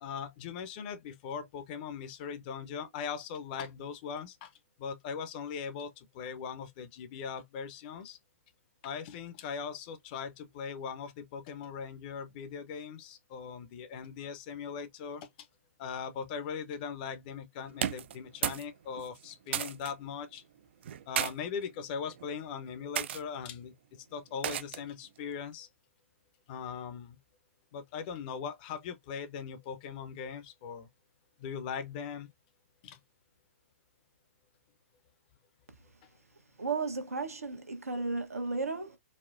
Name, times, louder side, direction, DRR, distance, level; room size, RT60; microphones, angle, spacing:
voice 1, 0.0-4.5 4.8-8.2 8.8-15.3 15.8-20.4 21.1-25.7 26.5-27.2 27.7-30.9 31.4-32.3 32.8-33.0, left 6 dB, 35° left, 0.7 m, -40 dB
sound 1, 17.7-18.7 19.0-19.9 20.8-21.3 22.1-22.4 22.9-23.2 24.4-24.9, right 10 dB, 50° right, 0.4 m, -33 dB
voice 2, 36.6-39.0, right 4 dB, 80° right, 1.0 m, -34 dB
4.2 x 2.1 x 2.5 m
figure-of-eight pair, 125°, 8 cm